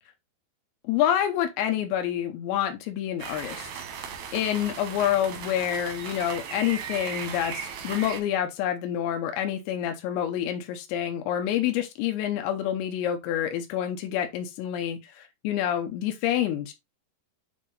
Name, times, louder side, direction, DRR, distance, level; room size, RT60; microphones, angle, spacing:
voice 1, 0.9-3.7 4.3-16.7, left 10 dB, 90° left, 3.1 m, -27 dB
sound 1, 3.2-8.2, right 7 dB, 70° right, 1.7 m, -37 dB
8.1 x 3.7 x 3.9 m
omnidirectional pair, 5.0 m